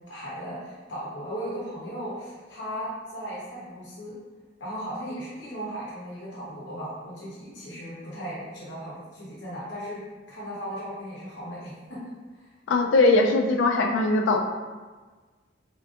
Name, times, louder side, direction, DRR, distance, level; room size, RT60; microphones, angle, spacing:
voice 1, 0.1-4.2 4.6-10.0 10.3-12.0, equal, 65° left, -8 dB, 0.9 m, -36 dB
voice 2, 12.7-14.4, left 2 dB, 85° left, 3 dB, 0.4 m, -20 dB
3.4 x 2.6 x 2.4 m, 1.3 s
head